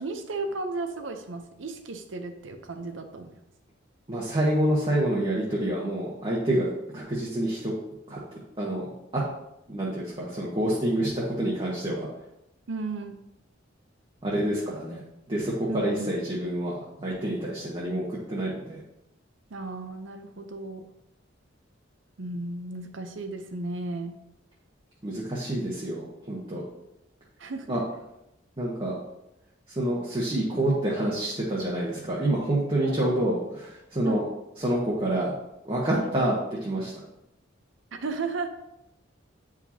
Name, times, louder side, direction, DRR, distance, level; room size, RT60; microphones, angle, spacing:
voice 1, 0.0-3.4 12.7-13.2 15.7-16.1 19.5-20.9 22.2-24.2 27.4-27.8 32.8-33.0 34.1-34.3 35.9-36.1 37.9-38.5, right 3 dB, 70° right, 6 dB, 0.7 m, -34 dB
voice 2, 4.1-7.7 8.1-8.9 9.1-9.2 9.7-12.1 14.2-15.0 15.3-18.8 25.0-26.6 27.7-27.8 28.6-28.9 29.7-34.2 34.6-35.3 35.6-36.3 36.6-36.9, right 1 dB, 25° right, -6 dB, 1.1 m, -27 dB
8.8 x 4.9 x 2.8 m, 0.87 s
head